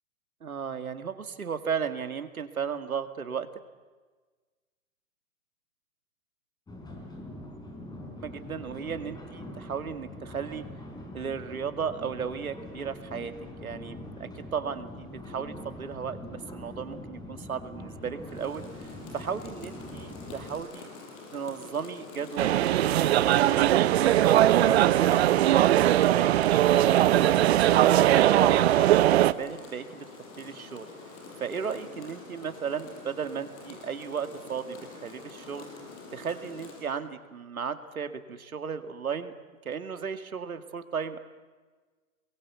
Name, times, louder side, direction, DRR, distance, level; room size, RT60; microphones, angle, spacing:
voice 1, 0.4-3.5 8.2-10.6 11.1-13.3 13.6-20.9 21.3-27.4 28.0-30.1 30.4-30.9 31.4-34.8 35.0-35.7 36.1-39.3 39.6-41.2, right 6 dB, 85° right, 9 dB, 2.3 m, -35 dB
sound 1, 6.7-20.6, left 1 dB, 10° left, 4.2 m, -43 dB
Rain, 18.2-36.9, left 3 dB, 35° left, 7.4 m, -46 dB
sound 2, 22.4-29.3, right 13 dB, 50° right, 0.9 m, -20 dB
29.0 x 22.5 x 8.3 m, 1.4 s
hypercardioid pair, 130°, 42 cm